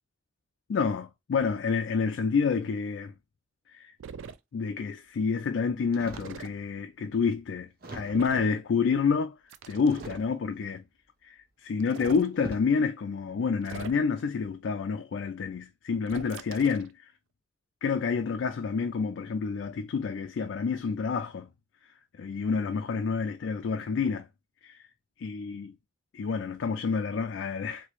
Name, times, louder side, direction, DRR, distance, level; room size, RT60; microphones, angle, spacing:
voice 1, 0.7-3.1 3.7-3.9 4.5-9.4 9.7-10.8 11.2-16.9 17.8-21.5 22.2-24.3 24.6-24.8 25.2-25.7 26.1-27.9, left 5 dB, 70° left, 0.4 m, -28 dB
sound 1, 4.0-4.4 6.2-6.5 8.1-8.5 9.5-10.3 11.8-12.3 13.6-14.2 16.1-16.9, right 6 dB, 85° right, 0.3 m, -42 dB
sound 2, 5.9-6.4 7.1-7.2 7.8-8.4 9.8-10.6 11.7-11.9 12.3-12.8 13.4-13.7, right 2 dB, 50° right, 0.7 m, -44 dB
3.1 x 2.7 x 2.9 m
head